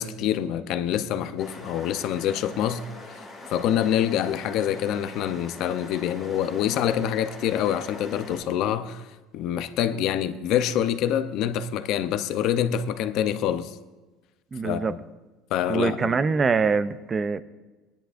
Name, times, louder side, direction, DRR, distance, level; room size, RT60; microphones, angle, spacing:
voice 1, 0.0-3.2 3.5-9.1 9.3-13.8 14.6-15.0 15.5-16.1, left 10 dB, 50° left, 0.5 m, -26 dB
sound 1, 1.4-8.4, left 2 dB, ahead, 2.0 m, -42 dB
voice 2, 14.5-14.9 15.7-17.4, right 5 dB, 20° right, 0.4 m, -24 dB
19.0 x 10.5 x 2.5 m
cardioid pair, 170°, 0 cm